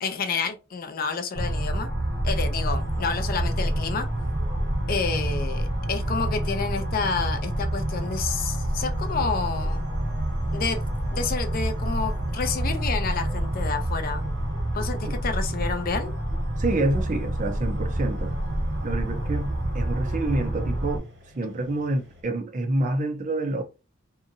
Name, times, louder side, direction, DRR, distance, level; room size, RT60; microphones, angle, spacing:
voice 1, 0.0-1.9 2.2-4.1 4.9-9.9 10.5-10.8 11.1-14.3 14.7-16.1, left 5 dB, 45° left, 0.4 m, -29 dB
sound 1, 1.3-21.0, right 1 dB, 80° right, 1.1 m, -27 dB
sound 2, 2.6-22.2, left 1 dB, 60° right, 1.2 m, -49 dB
voice 2, 16.6-18.3 18.8-19.5 19.7-21.1 21.3-23.6, right 2 dB, 40° right, 0.6 m, -27 dB
2.8 x 2.6 x 2.6 m
head